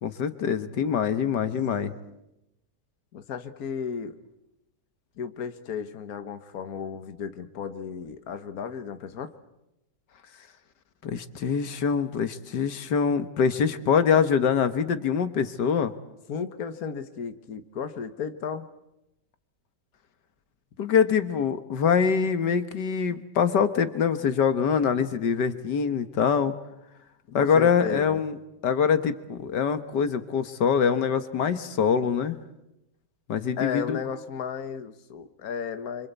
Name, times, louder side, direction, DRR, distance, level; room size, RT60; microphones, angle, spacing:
voice 1, 0.0-1.9 11.0-15.9 20.8-26.5 27.3-28.3 28.6-32.4 33.3-34.0, left 6 dB, 85° left, 10 dB, 1.9 m, -24 dB
voice 2, 3.1-4.2 5.2-9.3 16.3-18.7 27.4-28.2 33.6-36.1, left 7 dB, 60° left, 9 dB, 1.7 m, -34 dB
28.0 x 25.5 x 8.2 m, 0.89 s
omnidirectional pair, 1.8 m